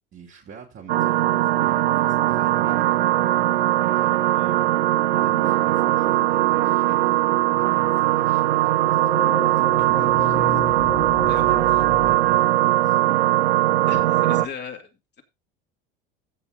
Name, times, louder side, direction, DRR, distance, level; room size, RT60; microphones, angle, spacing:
voice 1, 0.1-4.7 5.1-10.6 11.2-13.0, right 6 dB, 45° right, 3.5 m, -43 dB
sound 1, 0.9-14.5, right 16 dB, 90° right, 0.7 m, -20 dB
sound 2, 8.6-13.3, left 2 dB, 5° left, 1.2 m, -33 dB
voice 2, 13.9-14.9, left 6 dB, 35° left, 2.4 m, -36 dB
15.5 x 5.4 x 3.9 m
hypercardioid pair, 80°, 29 cm